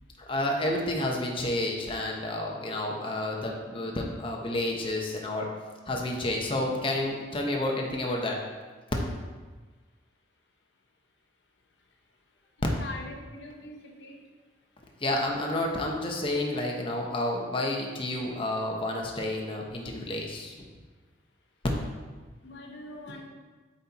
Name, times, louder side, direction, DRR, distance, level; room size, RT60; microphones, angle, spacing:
voice 1, 0.3-5.5 5.9-8.4 15.0-20.5, left 1 dB, 30° left, 0 dB, 0.9 m, -30 dB
voice 2, 12.8-14.2 22.4-23.3, left 2 dB, 75° left, 2 dB, 0.9 m, -42 dB
8.1 x 4.3 x 4.1 m, 1.3 s
head